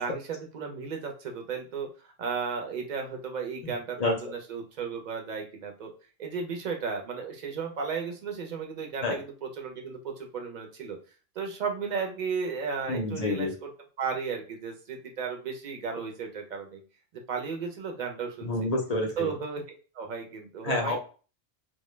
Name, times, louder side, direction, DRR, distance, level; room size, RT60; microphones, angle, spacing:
voice 1, 0.0-5.9 6.2-11.0 11.4-13.7 14.0-16.8 17.3-18.7 19.2-19.6 19.9-21.0, right 5 dB, 50° right, 2 dB, 0.5 m, -34 dB
voice 2, 12.9-13.5 18.4-19.3 20.6-21.0, left 2 dB, 50° left, 1 dB, 0.5 m, -28 dB
2.1 x 2.1 x 3.0 m, 0.37 s
omnidirectional pair, 1.2 m